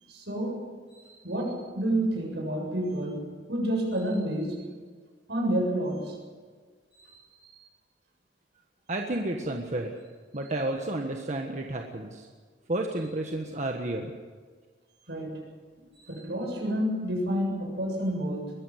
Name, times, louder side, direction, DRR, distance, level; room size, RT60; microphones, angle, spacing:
voice 1, 0.1-4.6 5.3-6.2 6.9-7.1 7.6-7.7 15.1-15.4 16.0-18.5, right 1 dB, 75° right, 1 dB, 7.4 m, -30 dB
voice 2, 8.9-9.9 10.3-12.3 12.7-14.1, right 1 dB, 45° right, 2 dB, 1.5 m, -31 dB
22.0 x 14.5 x 9.4 m, 1.5 s
head